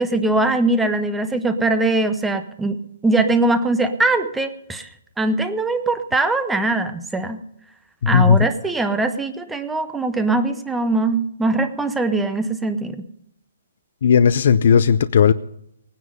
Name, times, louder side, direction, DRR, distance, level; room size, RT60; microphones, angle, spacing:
voice 1, 0.0-2.8 3.0-4.9 5.2-7.4 8.1-13.1, right 2 dB, 5° right, 9 dB, 0.6 m, -21 dB
voice 2, 8.0-8.5 14.0-15.3, left 7 dB, 50° left, 13 dB, 0.5 m, -15 dB
18.0 x 9.7 x 5.4 m, 0.75 s
hypercardioid pair, 170°, 0 cm